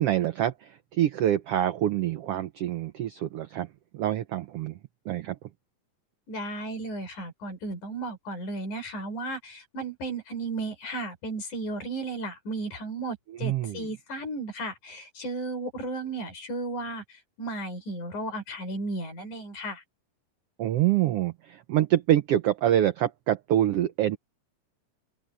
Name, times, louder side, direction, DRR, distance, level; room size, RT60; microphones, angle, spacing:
voice 1, 0.0-3.7 3.9-4.7 5.1-5.4 13.4-13.9 20.6-24.2, right 12 dB, 80° right, 1.3 m, -26 dB
voice 2, 6.3-17.0 17.4-19.8, right 2 dB, 70° left, 7.0 m, -34 dB
open air
omnidirectional pair, 3.7 m